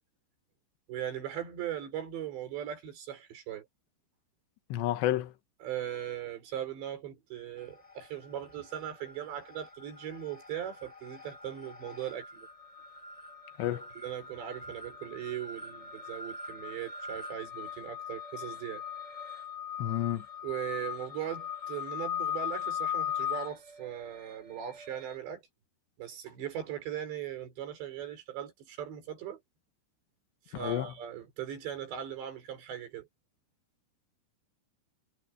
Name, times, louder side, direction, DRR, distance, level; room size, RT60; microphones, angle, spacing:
voice 1, 0.9-3.7 5.6-12.5 14.0-18.8 20.4-25.4 26.0-29.4 30.5-33.1, right 10 dB, 85° right, 6.8 m, -39 dB
voice 2, 4.7-5.3 13.6-13.9 19.8-20.2 30.6-30.9, left 13 dB, 85° left, 3.4 m, -30 dB
sound 1, 7.6-8.3 8.5-25.2, left 8 dB, 10° left, 5.1 m, -40 dB
omnidirectional pair, 4.9 m